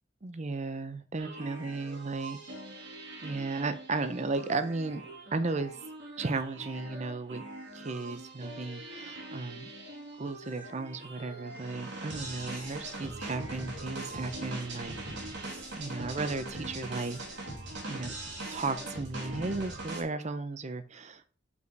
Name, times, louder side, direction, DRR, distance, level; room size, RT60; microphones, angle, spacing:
voice 1, 0.2-2.4 3.2-5.0 5.3-5.7 6.2-7.4 7.7-9.7 10.2-17.2 17.9-18.2 18.5-21.4, right 3 dB, 35° right, 12 dB, 0.6 m, -35 dB
sound 1, 1.2-20.0, right 2 dB, 65° right, 2.5 m, -42 dB
5.5 x 5.1 x 4.6 m, 0.40 s
head